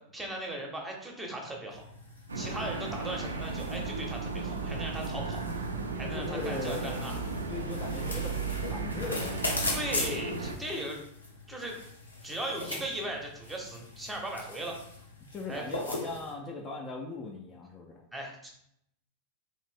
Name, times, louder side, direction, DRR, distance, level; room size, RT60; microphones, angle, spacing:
voice 1, 0.1-1.8 2.3-5.4 5.9-7.2 9.7-11.0 11.5-11.8 12.2-14.8 15.5-15.6 18.1-18.5, right 1 dB, 10° right, 1 dB, 0.8 m, -37 dB
sound 1, 1.7-16.3, left 2 dB, 80° left, 0.7 m, -40 dB
sound 2, 2.3-10.6, right 3 dB, 75° right, 0.3 m, -35 dB
voice 2, 6.1-8.4 8.7-9.7 15.3-18.0, left 3 dB, 25° left, -1 dB, 0.4 m, -39 dB
2.7 x 2.5 x 3.5 m, 0.74 s
figure-of-eight pair, 90°, 0 cm